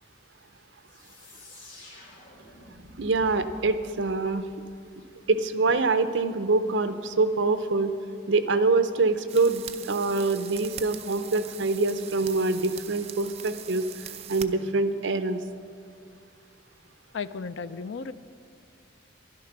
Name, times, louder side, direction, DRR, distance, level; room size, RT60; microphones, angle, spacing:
sound 1, 0.9-5.4, left 1 dB, 45° left, 2.4 m, -50 dB
voice 1, 3.0-4.4 5.3-7.9 8.3-13.9 14.3-15.4, right 3 dB, 75° right, 11 dB, 0.7 m, -25 dB
sound 2, 9.3-14.5, right 9 dB, 35° right, 0.5 m, -42 dB
voice 2, 17.1-18.1, left 5 dB, 75° left, 13 dB, 0.4 m, -34 dB
11.5 x 11.0 x 6.0 m, 2.3 s
head